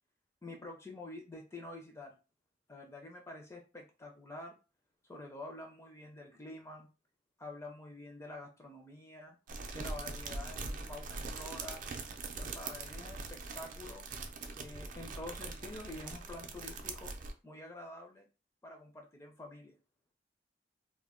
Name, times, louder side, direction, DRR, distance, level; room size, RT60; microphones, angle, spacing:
voice 1, 0.4-2.2 2.7-4.6 5.1-6.9 7.4-9.4 9.7-11.8 12.3-14.1 14.6-17.1 17.4-18.3 18.6-19.8, left 2 dB, 15° left, 3 dB, 0.4 m, -48 dB
sound 1, 9.5-17.3, right 3 dB, 50° right, 0.4 m, -42 dB
2.1 x 2.1 x 3.5 m, 0.32 s
head